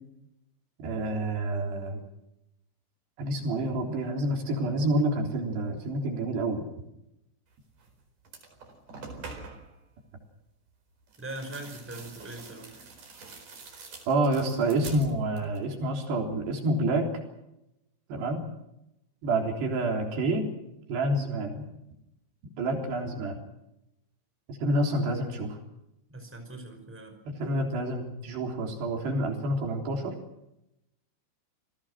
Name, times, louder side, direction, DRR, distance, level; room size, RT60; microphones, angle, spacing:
voice 1, 0.8-2.0 3.2-6.6 14.1-17.1 18.1-18.4 19.2-20.5 20.9-21.7 22.6-23.4 24.5-25.6 27.4-30.1, right 1 dB, 70° right, 2 dB, 5.7 m, -28 dB
sound 1, 7.8-7.9 8.2-9.7 11.1-15.7 16.0-16.6, right 4 dB, 50° right, 5.9 m, -45 dB
voice 2, 11.2-12.7 26.1-27.1, right 1 dB, 5° right, 5 dB, 4.9 m, -41 dB
29.0 x 18.5 x 6.3 m, 0.87 s
omnidirectional pair, 5.0 m